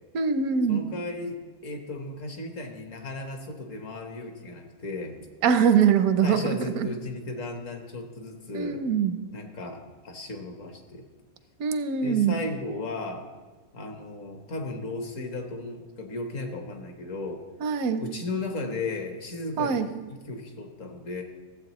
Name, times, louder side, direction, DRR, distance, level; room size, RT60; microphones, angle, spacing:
voice 1, 0.1-0.8 5.4-6.9 8.5-9.1 11.6-12.3 17.6-18.0 19.6-19.9, right 7 dB, 80° right, 10 dB, 1.1 m, -23 dB
voice 2, 0.7-1.4 1.6-5.2 6.2-8.8 9.3-11.0 12.0-13.2 13.7-17.5 18.0-19.8 20.1-21.2, left 2 dB, 60° left, 4 dB, 1.4 m, -35 dB
14.5 x 7.8 x 3.0 m, 1.3 s
omnidirectional pair, 1.5 m